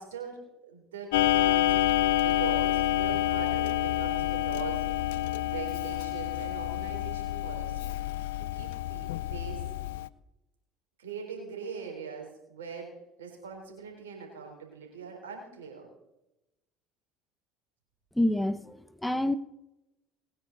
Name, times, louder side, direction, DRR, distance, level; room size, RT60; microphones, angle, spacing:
voice 1, 0.0-4.9 5.5-8.0 8.4-9.7 11.0-15.9, right 5 dB, 85° right, 1 dB, 3.8 m, -41 dB
Clock, 1.1-10.1, left 14 dB, 80° left, 0.4 m, -28 dB
voice 2, 18.2-19.4, left 1 dB, 5° left, 14 dB, 0.9 m, -27 dB
20.0 x 9.7 x 4.0 m, 0.91 s
hypercardioid pair, 65°, 0 cm